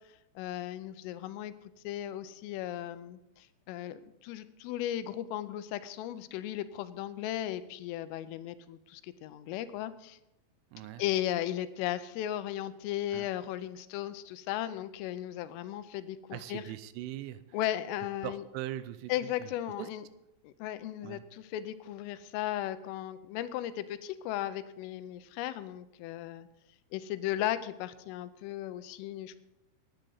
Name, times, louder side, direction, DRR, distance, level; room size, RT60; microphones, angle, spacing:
voice 1, 0.4-1.5 1.8-10.2 10.8-16.6 17.5-18.4 19.1-20.0 20.4-26.5 26.9-29.4, left 12 dB, 90° left, 13 dB, 3.3 m, -36 dB
voice 2, 10.7-11.0 13.1-13.3 16.3-17.6 18.2-19.5 19.8-19.9 21.0-21.2, right 14 dB, 85° right, 13 dB, 3.1 m, -41 dB
17.5 x 9.2 x 3.9 m, 0.89 s
omnidirectional pair, 5.7 m